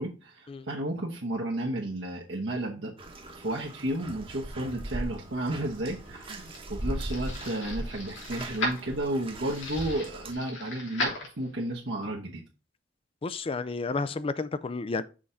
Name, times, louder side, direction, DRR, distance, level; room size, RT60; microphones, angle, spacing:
voice 1, 0.0-2.9 3.3-12.4, right 1 dB, 70° right, 1.1 m, -32 dB
Bathtub (filling or washing), 3.0-10.3, right 1 dB, 30° right, 1.1 m, -39 dB
sound 1, 5.8-11.8, left 1 dB, 75° left, 3.0 m, -37 dB
voice 2, 13.2-15.0, left 3 dB, 30° left, 0.4 m, -31 dB
6.3 x 3.7 x 5.6 m
head